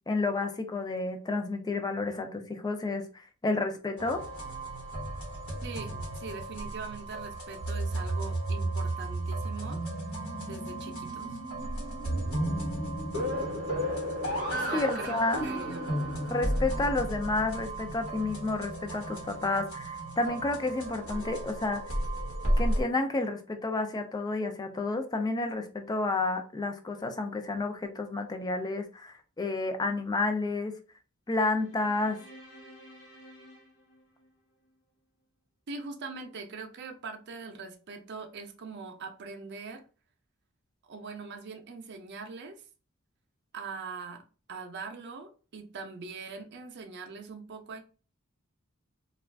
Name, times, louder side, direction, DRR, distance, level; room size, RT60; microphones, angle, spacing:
voice 1, 0.1-4.2 14.7-15.4 16.3-21.8 22.6-30.7 31.3-32.2, left 2 dB, 20° left, 0.4 m, -30 dB
sound 1, 4.0-22.8, right 1 dB, 85° left, 1.2 m, -33 dB
voice 2, 5.6-9.8 10.4-11.4 14.5-15.9 35.7-39.8 40.8-42.6 43.5-44.2 44.5-47.8, right 4 dB, 55° right, 0.5 m, -42 dB
sound 2, 31.4-34.8, equal, 50° left, 1.1 m, -53 dB
2.3 x 2.3 x 3.3 m
head